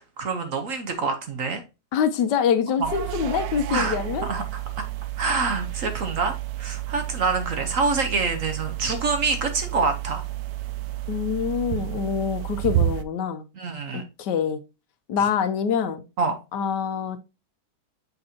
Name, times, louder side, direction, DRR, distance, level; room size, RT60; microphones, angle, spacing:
voice 1, 0.0-1.6 2.8-2.9 3.7-4.0 4.3-4.4 4.8-4.9 5.2-10.2 13.5-14.0 16.2-16.3, right 4 dB, 55° right, 1.1 m, -26 dB
voice 2, 1.9-4.3 11.1-13.4 13.9-14.6 15.1-16.0 16.5-17.2, left 7 dB, 75° left, 1.3 m, -25 dB
sound 1, 2.8-13.0, right 14 dB, 70° right, 0.9 m, -31 dB
6.7 x 5.3 x 2.8 m
omnidirectional pair, 1.9 m